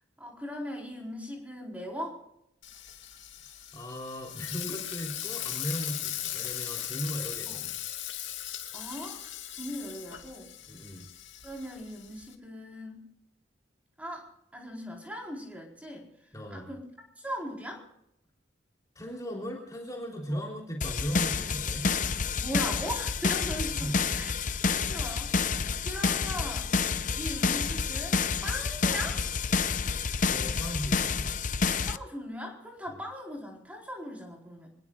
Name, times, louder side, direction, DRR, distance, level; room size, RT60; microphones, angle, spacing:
voice 1, 0.2-2.2 7.5-7.6 8.7-9.2 9.5-10.5 11.4-13.0 14.0-16.9 17.2-17.8 20.3-20.4 22.4-25.5 25.8-26.8 27.1-29.2 31.9-34.7, equal, 5° right, -1 dB, 4.4 m, -39 dB
Frying (food), 2.6-12.3, left 12 dB, 80° left, 2.5 m, -38 dB
voice 2, 3.4-7.8 10.7-11.1 16.3-16.7 19.0-21.9 23.8-24.0 30.3-31.3 32.9-33.0, equal, 20° left, -1 dB, 3.5 m, -37 dB
sound 1, 20.8-32.0, left 5 dB, 40° left, 0.7 m, -29 dB
27.0 x 20.5 x 2.5 m, 0.78 s
head